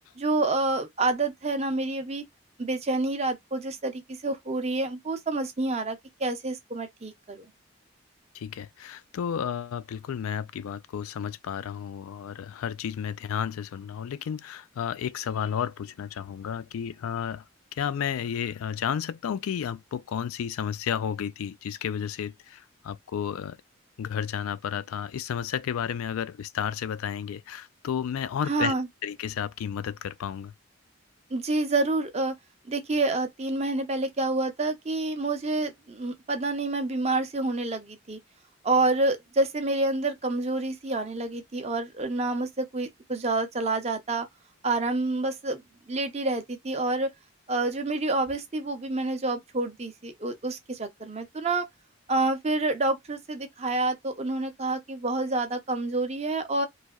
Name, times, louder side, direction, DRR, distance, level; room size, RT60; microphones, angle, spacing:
voice 1, 0.2-2.2 2.6-7.5 28.5-28.9 31.3-32.3 32.7-38.2 38.6-44.3 44.6-45.6 45.9-47.1 47.5-51.7 52.1-56.7, right 2 dB, 30° right, 0.6 m, -28 dB
voice 2, 8.3-17.4 17.7-23.6 24.0-28.7 29.0-30.5, left 8 dB, 80° left, 0.3 m, -32 dB
3.2 x 2.6 x 2.3 m
head